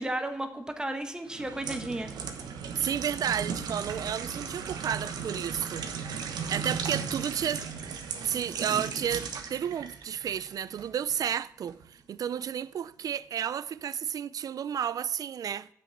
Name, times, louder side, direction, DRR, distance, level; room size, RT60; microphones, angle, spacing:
voice 1, 0.0-2.1, right 1 dB, 10° right, 1.2 m, -33 dB
sound 1, 1.3-11.2 11.7-11.9, right 6 dB, 90° right, 1.1 m, -36 dB
voice 2, 2.8-5.9 6.5-7.6 8.2-15.7, right 8 dB, 65° right, 0.4 m, -32 dB
7.7 x 6.1 x 7.8 m
cardioid pair, 90°, 7 cm